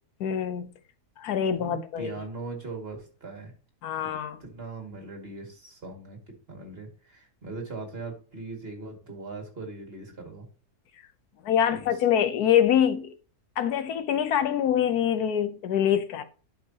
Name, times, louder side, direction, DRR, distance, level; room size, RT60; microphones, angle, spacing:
voice 1, 0.2-0.7 1.2-2.1 3.8-4.4 11.4-13.1 13.6-16.2, left 9 dB, 80° left, 1.3 m, -25 dB
voice 2, 1.5-3.5 4.4-10.5 11.7-11.9, right 3 dB, 40° right, 2.3 m, -40 dB
11.5 x 5.8 x 2.8 m
omnidirectional pair, 1.6 m